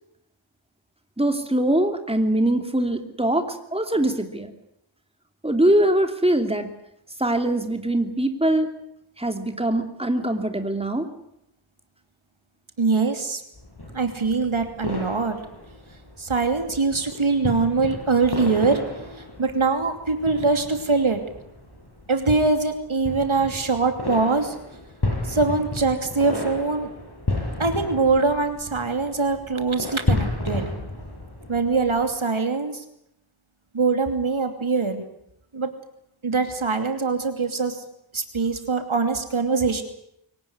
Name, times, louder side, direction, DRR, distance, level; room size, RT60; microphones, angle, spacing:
voice 1, 1.2-4.5 5.4-6.7 7.2-8.7 9.2-11.1, right 1 dB, 10° right, 6 dB, 2.8 m, -22 dB
voice 2, 12.8-13.4 13.9-15.4 16.2-18.8 19.4-21.2 22.1-24.5 25.2-26.9 27.6-30.7 31.5-32.8 33.7-35.0 35.5-35.7 36.2-37.8 38.1-39.8, right 4 dB, 75° right, 7 dB, 2.9 m, -23 dB
sound 1, 13.5-32.1, left 2 dB, 50° left, 7.3 m, -33 dB
24.0 x 18.0 x 9.7 m, 0.77 s
wide cardioid pair, 50°, 49 cm